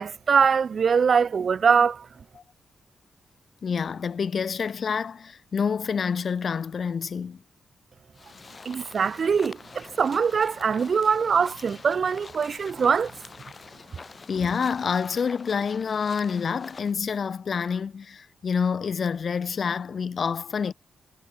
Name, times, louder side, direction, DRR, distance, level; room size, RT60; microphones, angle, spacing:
voice 1, 0.0-2.1 8.7-13.1, right 6 dB, 50° right, 0.5 m, -22 dB
voice 2, 3.6-7.4 14.3-20.7, left 6 dB, 50° left, 0.5 m, -27 dB
sound 1, 8.1-17.0, left 4 dB, 35° left, 4.0 m, -46 dB
cardioid pair, 115°, 0 cm